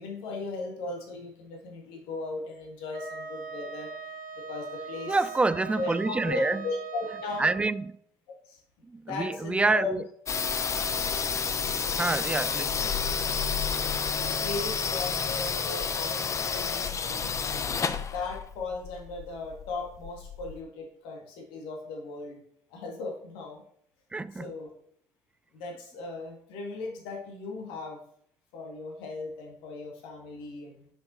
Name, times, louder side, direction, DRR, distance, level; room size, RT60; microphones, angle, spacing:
voice 1, 0.0-3.9 4.4-5.2 5.8-7.5 8.3-8.6 9.1-10.0 10.6-11.1 14.1-17.3 17.7-22.4 22.7-23.6 24.3-24.7 25.5-28.0 28.5-30.9, left 3 dB, 75° left, 1.7 m, -37 dB
Wind instrument woodwind instrument, 2.9-7.7, right 5 dB, 90° right, 1.2 m, -40 dB
voice 2, 5.1-6.7 7.4-8.0 8.8-10.0 12.0-13.7 24.1-24.5, right 3 dB, 15° right, 0.3 m, -28 dB
sound 1, 10.3-20.6, left 6 dB, 35° left, 0.6 m, -30 dB
5.8 x 5.4 x 4.2 m
hypercardioid pair, 70°, 9 cm